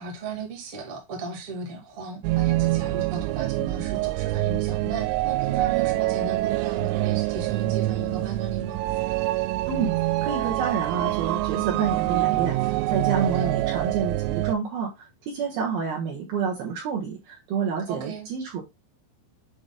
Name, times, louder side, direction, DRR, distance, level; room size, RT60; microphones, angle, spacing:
voice 1, 0.0-8.8 13.2-13.5 17.9-18.3, right 4 dB, 40° right, 2.1 m, -36 dB
sound 1, 2.2-14.5, right 18 dB, 85° right, 2.5 m, -25 dB
voice 2, 10.2-18.6, right 6 dB, 65° right, 2.8 m, -29 dB
8.2 x 3.6 x 3.7 m
omnidirectional pair, 5.5 m